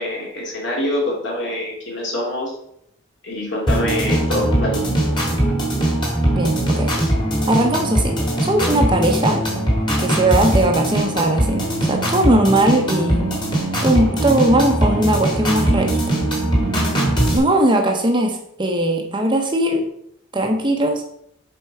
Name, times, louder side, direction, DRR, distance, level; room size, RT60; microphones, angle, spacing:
voice 1, 0.0-2.5 3.2-4.8, left 1 dB, 60° left, -3 dB, 2.6 m, -25 dB
sound 1, 3.7-17.4, right 1 dB, 25° left, 1.8 m, -20 dB
voice 2, 6.3-6.9 7.5-9.4 10.0-13.3 13.8-16.0 17.3-19.9 20.3-21.0, right 1 dB, 25° right, 3 dB, 0.7 m, -19 dB
7.4 x 4.4 x 4.7 m, 0.72 s
head